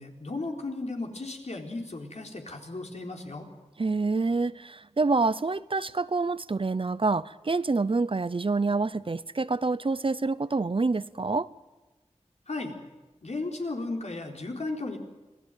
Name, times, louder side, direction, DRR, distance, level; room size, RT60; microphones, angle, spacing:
voice 1, 0.0-3.5 12.5-12.7 13.2-15.0, left 2 dB, 70° left, 4.1 m, -35 dB
voice 2, 3.8-11.5, right 3 dB, 50° right, 0.7 m, -27 dB
26.5 x 17.0 x 9.2 m
wide cardioid pair, 70°, 12 cm